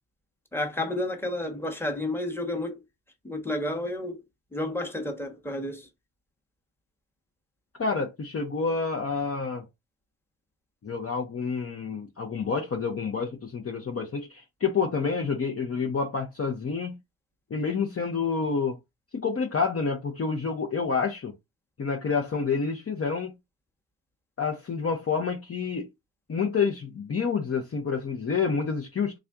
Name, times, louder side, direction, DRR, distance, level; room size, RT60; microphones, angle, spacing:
voice 1, 0.5-2.8 3.2-4.2 4.5-5.9, left 1 dB, 5° left, 1.2 m, -31 dB
voice 2, 7.8-9.6 10.8-16.9 17.5-18.8 19.1-21.3 21.8-23.3 24.4-25.9 26.3-29.1, left 5 dB, 35° left, 0.8 m, -28 dB
3.5 x 2.5 x 3.6 m
supercardioid pair, 50°, 43 cm